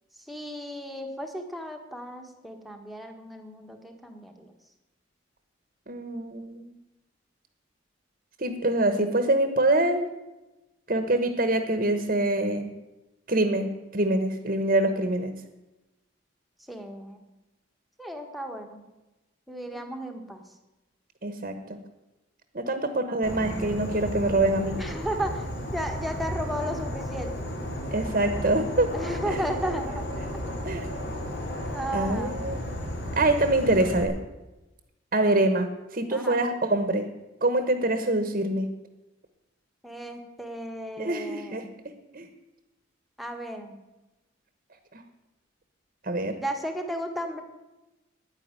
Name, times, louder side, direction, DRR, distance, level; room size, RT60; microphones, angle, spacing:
voice 1, 0.1-4.5 16.7-17.2 18.0-18.8 19.5-20.4 22.6-23.1 24.8-25.5 25.7-27.5 28.9-30.0 31.7-32.4 36.1-36.4 39.8-41.8 43.2-43.7 46.4-47.4, right 1 dB, ahead, 3 dB, 1.4 m, -34 dB
voice 2, 5.9-6.7 8.4-10.1 10.9-12.7 13.3-15.3 19.7-19.8 21.2-21.8 22.5-24.8 27.9-28.9 29.3-29.4 30.6-30.9 31.9-32.6 33.1-34.2 35.1-37.1 37.4-38.7 41.0-41.6 42.1-42.3 44.9-45.0 46.0-46.4, right 2 dB, 45° right, 8 dB, 1.2 m, -25 dB
Insect / Frog, 23.2-34.0, equal, 55° left, 2.3 m, -33 dB
10.0 x 9.7 x 9.0 m, 1.0 s
head